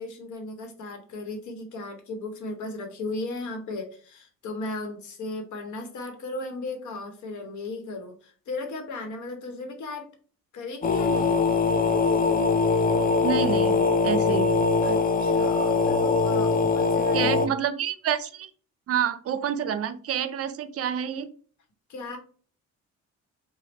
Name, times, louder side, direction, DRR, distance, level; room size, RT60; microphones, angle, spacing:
voice 1, 0.0-10.1 10.5-11.4 14.8-17.5 21.9-22.2, left 2 dB, 75° left, 4 dB, 1.0 m, -36 dB
sound 1, 10.8-17.5, left 4 dB, 30° left, 0.4 m, -22 dB
voice 2, 13.2-14.5 17.1-18.5 18.9-21.3, right 8 dB, 50° right, 12 dB, 0.5 m, -28 dB
3.4 x 2.1 x 4.0 m, 0.43 s
cardioid pair, 90°, 30 cm